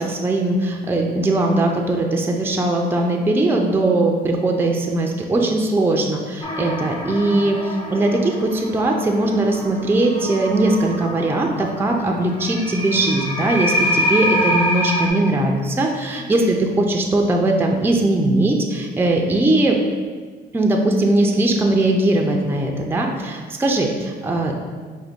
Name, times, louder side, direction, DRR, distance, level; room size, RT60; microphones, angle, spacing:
voice 1, 0.0-19.8 20.5-24.7, right 2 dB, 10° right, 1 dB, 0.4 m, -20 dB
sound 1, 6.4-15.1, equal, 25° left, 0.7 m, -26 dB
4.8 x 2.1 x 3.6 m, 1.5 s
cardioid pair, 85°, 18 cm